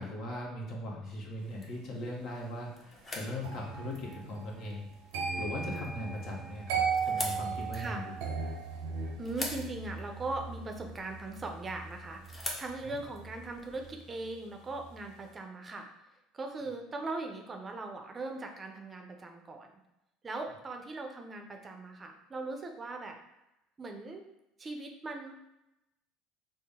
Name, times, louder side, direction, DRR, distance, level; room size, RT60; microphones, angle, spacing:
voice 1, 0.0-4.9 5.3-8.1 12.9-13.0, left 1 dB, 60° left, -2 dB, 1.0 m, -39 dB
sound 1, 1.0-13.9, left 1 dB, 25° left, 0.9 m, -46 dB
sound 2, 3.4-14.4 14.7-15.1, right 5 dB, 80° right, 0.7 m, -38 dB
voice 2, 9.2-15.9 16.3-19.8 20.2-23.2 23.8-24.2 24.6-25.3, right 2 dB, 30° right, 3 dB, 0.5 m, -40 dB
3.7 x 2.0 x 3.6 m, 0.88 s
hypercardioid pair, 75°, 0 cm